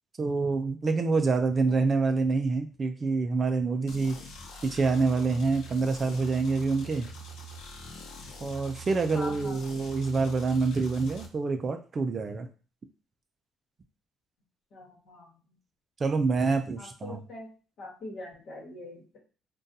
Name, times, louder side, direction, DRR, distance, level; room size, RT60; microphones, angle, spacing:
voice 1, 0.2-4.2 4.6-7.1 8.4-12.5 16.0-17.2, right 4 dB, 25° right, 7 dB, 0.3 m, -26 dB
sound 1, 3.9-11.3, right 2 dB, 85° left, 0.6 m, -44 dB
voice 2, 9.1-9.7 14.7-15.3 16.8-17.5 17.8-19.2, left 2 dB, 55° left, -3 dB, 1.1 m, -43 dB
3.8 x 2.2 x 2.6 m, 0.36 s
cardioid pair, 170°, 0 cm